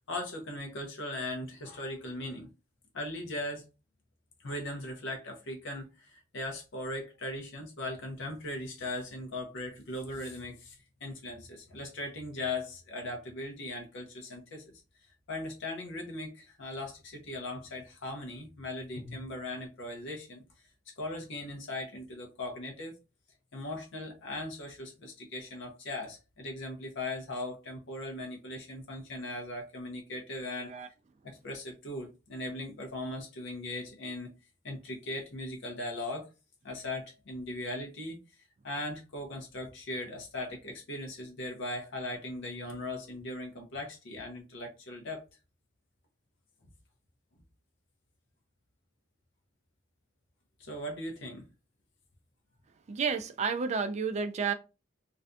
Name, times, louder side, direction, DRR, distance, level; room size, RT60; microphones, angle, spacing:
voice 1, 0.1-2.5 2.9-3.6 4.4-14.8 15.3-20.4 21.0-23.0 23.5-30.7 31.2-34.3 34.6-36.3 36.6-38.2 38.6-45.2 50.6-51.4, left 1 dB, 65° left, 0.7 m, -39 dB
voice 2, 52.9-54.5, right 5 dB, 35° right, 0.3 m, -31 dB
2.5 x 2.2 x 2.5 m
head